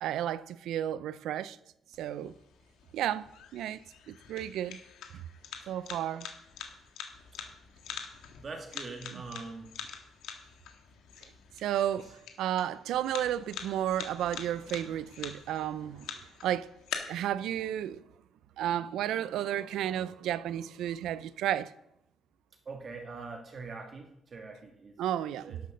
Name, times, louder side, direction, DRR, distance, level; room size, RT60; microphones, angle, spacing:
voice 1, 0.0-1.6 2.0-2.3 2.9-3.8 4.1-4.8 5.7-6.3 9.1-9.2 11.6-12.1 12.4-16.1 16.4-16.7 17.1-18.0 18.6-21.7 25.0-25.6, right 11 dB, 85° right, 0.4 m, -32 dB
sound 1, 1.9-16.9, left 8 dB, 85° left, 1.6 m, -45 dB
voice 2, 8.4-9.7 22.6-25.6, right 4 dB, 45° right, 1.6 m, -43 dB
11.5 x 6.4 x 6.6 m
cardioid pair, 90°, 0 cm